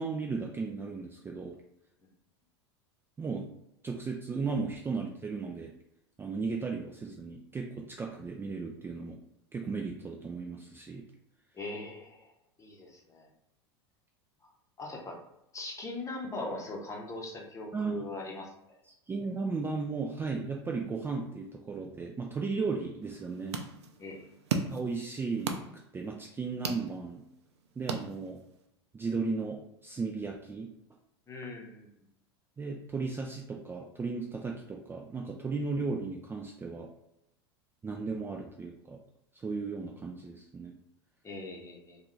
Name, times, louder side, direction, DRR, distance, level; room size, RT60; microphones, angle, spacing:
voice 1, 0.0-1.6 3.2-3.5 3.8-5.7 6.2-9.2 9.5-11.0 17.7-18.0 18.9-23.6 24.7-25.6 25.9-27.2 27.8-28.4 28.9-30.7 32.6-36.9 37.8-39.0 39.3-40.7, right 4 dB, 15° right, 0 dB, 0.4 m, -35 dB
voice 2, 11.5-12.3 12.6-13.3 14.8-15.2 15.5-18.8 24.0-24.2 31.3-31.9 41.2-42.0, left 2 dB, 20° left, -1 dB, 0.9 m, -40 dB
sound 1, 23.0-28.7, right 5 dB, 85° right, 0.5 m, -39 dB
3.6 x 2.4 x 3.2 m, 0.83 s
hypercardioid pair, 95°, 14 cm